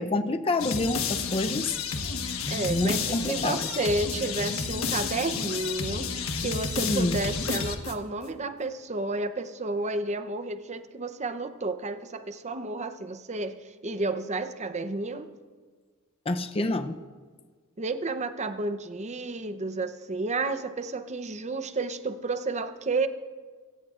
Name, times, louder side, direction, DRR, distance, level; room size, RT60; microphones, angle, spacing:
voice 1, 0.0-1.8 2.7-3.6 6.8-7.2 16.3-17.0, left 2 dB, 30° left, 8 dB, 0.6 m, -27 dB
sound 1, 0.6-8.2, left 5 dB, 90° left, 1.2 m, -31 dB
voice 2, 2.5-6.1 6.4-15.3 17.8-23.1, right 2 dB, 35° right, 10 dB, 0.7 m, -31 dB
22.5 x 17.5 x 2.5 m, 1.5 s
head